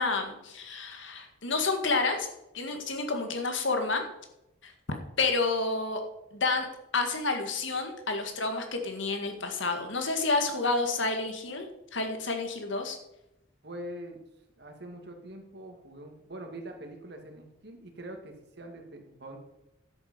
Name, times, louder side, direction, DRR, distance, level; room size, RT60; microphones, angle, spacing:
voice 1, 0.0-2.3 2.5-4.0 4.6-4.7 5.2-6.0 6.3-6.7 6.9-13.0, left 3 dB, 70° left, 5 dB, 1.8 m, -29 dB
voice 2, 13.6-14.2 14.6-19.4, right 1 dB, 55° right, 3 dB, 2.0 m, -43 dB
10.5 x 8.2 x 5.3 m, 0.88 s
head